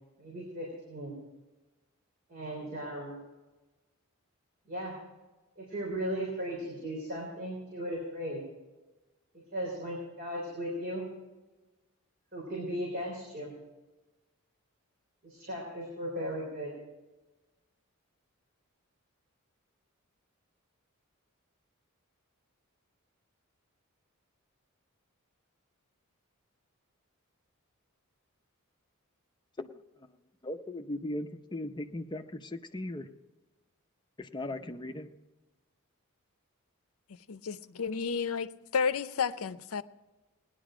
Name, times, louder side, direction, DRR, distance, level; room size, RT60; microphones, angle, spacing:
voice 1, 0.2-1.2 2.3-3.2 4.7-5.0 5.6-8.4 9.3-11.0 12.3-13.5 15.2-16.7, equal, 45° right, -3 dB, 3.6 m, -37 dB
voice 2, 30.4-33.1 34.2-35.1, left 1 dB, 20° left, 7 dB, 0.6 m, -38 dB
voice 3, 37.1-39.8, left 6 dB, 80° left, 13 dB, 0.6 m, -32 dB
18.5 x 10.5 x 5.0 m, 1.2 s
head